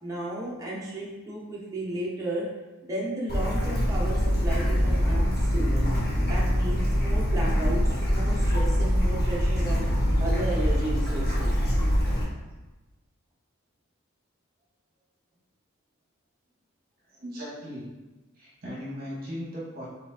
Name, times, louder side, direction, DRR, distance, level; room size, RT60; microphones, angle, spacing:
voice 1, 0.0-2.5 2.8-5.9 6.3-9.9 10.2-11.6, right 1 dB, 15° right, -5 dB, 0.8 m, -33 dB
Bird / Stream, 3.3-12.2, equal, 50° left, 1.0 m, -24 dB
voice 2, 17.1-17.9 18.3-19.9, equal, 45° right, -6 dB, 1.1 m, -37 dB
4.3 x 3.5 x 2.7 m, 1.1 s
head